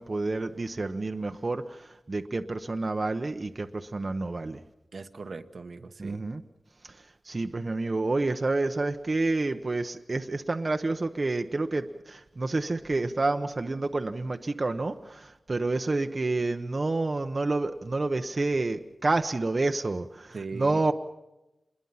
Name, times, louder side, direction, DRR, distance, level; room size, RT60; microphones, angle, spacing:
voice 1, 0.0-4.6 6.0-6.4 6.8-7.0 7.3-20.9, right 2 dB, 40° right, 6 dB, 0.9 m, -29 dB
voice 2, 4.9-6.2 20.3-20.8, right 4 dB, 65° right, 8 dB, 1.2 m, -39 dB
26.5 x 21.5 x 5.7 m, 0.96 s
wide cardioid pair, 110°, 0 cm